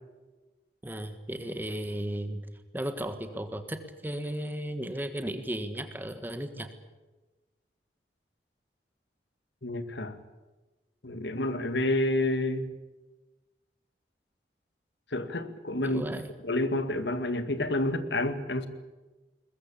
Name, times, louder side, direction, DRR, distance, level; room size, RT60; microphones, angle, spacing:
voice 1, 0.8-2.4 2.7-6.7 15.8-16.3, right 1 dB, 10° right, 8 dB, 1.5 m, -35 dB
voice 2, 9.6-10.2 11.0-12.7 15.1-16.0 16.4-18.7, left 1 dB, 85° left, 10 dB, 2.1 m, -29 dB
21.5 x 21.5 x 8.6 m, 1.2 s
head